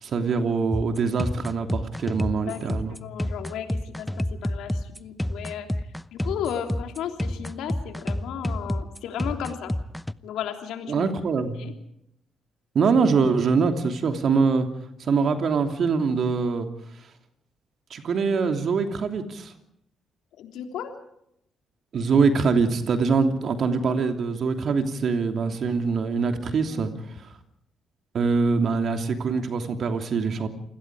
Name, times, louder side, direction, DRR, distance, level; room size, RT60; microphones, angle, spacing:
voice 1, 0.0-3.0 10.9-11.6 12.7-14.7 15.0-16.7 17.9-19.5 21.9-26.9 28.1-30.5, right 5 dB, 55° right, 6 dB, 2.9 m, -23 dB
sound 1, 0.7-10.1, left 1 dB, 5° left, 0.9 m, -29 dB
voice 2, 3.0-5.7 6.1-9.7 10.2-11.1 11.6-11.7 12.8-12.9 20.4-20.9 26.5-26.9, left 9 dB, 70° left, 5 dB, 3.3 m, -34 dB
28.0 x 21.0 x 4.9 m, 0.76 s
hypercardioid pair, 45°, 0 cm